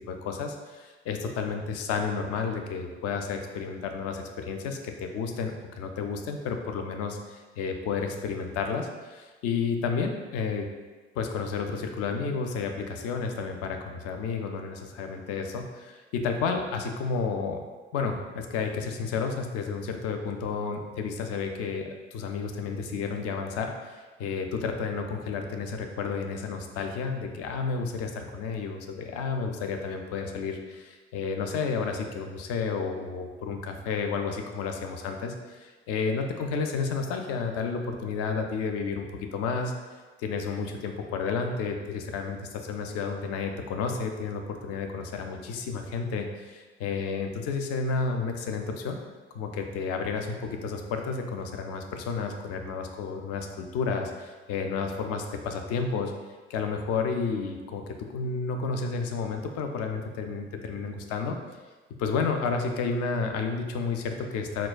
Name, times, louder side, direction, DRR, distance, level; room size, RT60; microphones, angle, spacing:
voice 1, 0.1-10.7 11.2-17.6 17.9-39.7 40.2-49.0 49.3-56.1 56.5-61.4 62.0-64.7, left 5 dB, 45° left, 4 dB, 0.4 m, -31 dB
3.9 x 2.2 x 2.3 m, 1.3 s
figure-of-eight pair, 55°, 34 cm